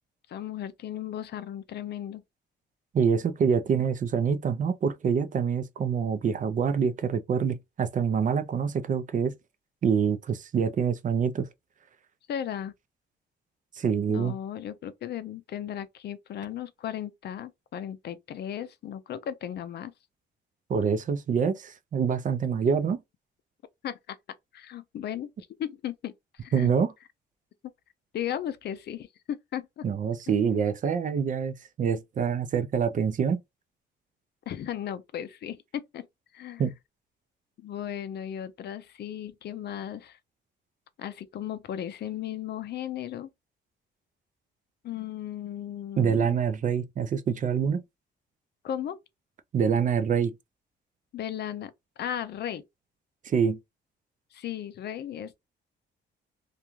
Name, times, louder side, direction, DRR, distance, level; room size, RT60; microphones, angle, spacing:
voice 1, 0.3-2.2 12.3-12.7 14.1-19.9 23.8-24.2 24.5-25.3 25.6-26.1 26.4-26.7 28.1-29.8 30.3-30.4 34.5-36.0 36.3-36.6 37.6-40.2 41.0-43.3 44.8-46.4 48.6-49.0 51.1-52.7 54.3-55.4, left 10 dB, 55° left, 0.5 m, -36 dB
voice 2, 2.9-9.3 9.8-11.5 13.8-14.3 20.7-23.0 26.5-26.9 29.8-33.4 36.6-36.7 46.0-47.8 49.5-50.3 53.2-53.6, right 6 dB, 40° right, 0.4 m, -26 dB
2.5 x 2.2 x 3.0 m
cardioid pair, 90°, 20 cm